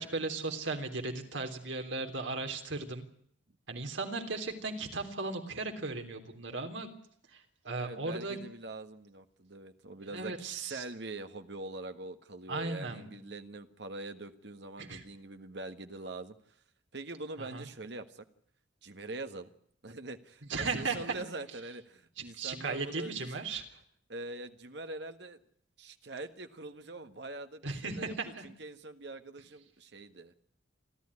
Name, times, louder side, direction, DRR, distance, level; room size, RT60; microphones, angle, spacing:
voice 1, 0.0-3.1 3.7-6.9 7.3-8.4 10.1-10.8 12.5-13.1 14.8-15.0 17.4-17.7 20.5-21.0 22.3-23.8 27.6-28.4, right 3 dB, 75° right, 5 dB, 3.4 m, -36 dB
voice 2, 7.8-16.4 16.9-18.2 18.8-19.5 19.8-23.4 24.1-25.4 25.8-30.3, right 2 dB, 60° right, 8 dB, 1.5 m, -43 dB
29.0 x 12.5 x 9.7 m, 0.65 s
head